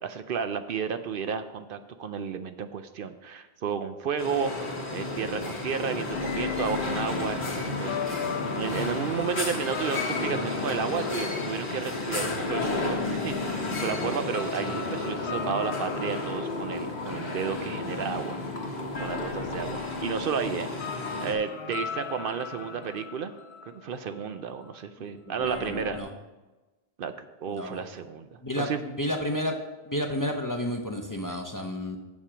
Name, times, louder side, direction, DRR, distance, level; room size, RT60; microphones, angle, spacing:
voice 1, 0.0-4.5 4.9-8.2 8.5-18.4 19.0-20.7 21.2-23.3 23.7-26.0 27.0-28.8, right 6 dB, 65° right, 10 dB, 0.7 m, -32 dB
sound 1, 4.2-21.3, left 3 dB, 55° left, 1.6 m, -32 dB
sound 2, 6.1-17.9 18.2-18.4 18.9-24.4 24.7-24.8 25.4-26.0, left 6 dB, 85° left, 1.0 m, -38 dB
sound 3, 12.2-19.4, right 8 dB, 50° right, 1.0 m, -48 dB
voice 2, 25.0-26.1 27.5-27.8 28.4-29.6 29.9-32.0, left 1 dB, 25° left, 3 dB, 0.6 m, -32 dB
7.4 x 7.2 x 5.0 m, 1.2 s
omnidirectional pair, 1.0 m